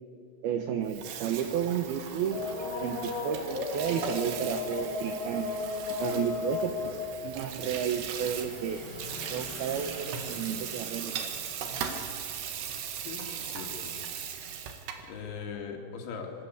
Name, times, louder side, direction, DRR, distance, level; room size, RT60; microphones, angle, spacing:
voice 1, 0.4-2.4 2.8-5.5 6.0-7.0 7.2-8.8 9.3-11.3, right 8 dB, 80° right, 7 dB, 2.2 m, -32 dB
Water tap faucet / Sink (filling or washing), 0.8-15.1, right 8 dB, 60° right, 3.4 m, -39 dB
sound 1, 2.3-12.2 12.6-12.7 13.8-13.9, left 4 dB, 70° left, 5.4 m, -37 dB
voice 2, 13.1-14.0 14.6-16.5, left 6 dB, 85° left, 1 dB, 5.6 m, -41 dB
26.0 x 24.5 x 8.2 m, 2.6 s
omnidirectional pair, 5.9 m